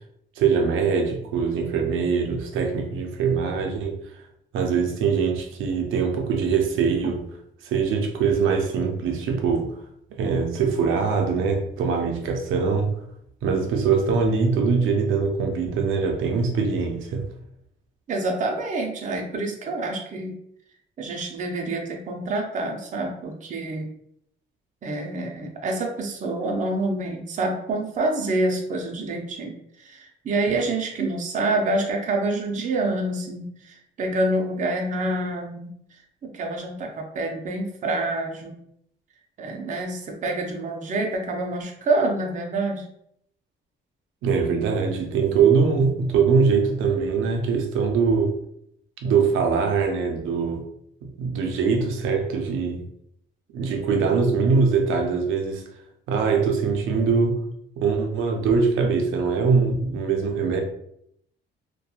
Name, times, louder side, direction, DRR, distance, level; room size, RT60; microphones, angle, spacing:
voice 1, 0.4-4.0 4.5-7.2 7.6-9.7 10.1-12.9 13.4-17.2 44.2-48.4 49.0-50.7 51.2-52.8 53.5-55.6 56.1-57.4 57.8-60.6, right 5 dB, 85° right, 3 dB, 0.5 m, -22 dB
voice 2, 18.1-20.4 21.0-23.9 24.8-35.7 36.2-38.6 39.4-42.8, right 2 dB, 40° right, 2 dB, 0.5 m, -27 dB
2.7 x 2.2 x 2.3 m, 0.72 s
cardioid pair, 90°, 20 cm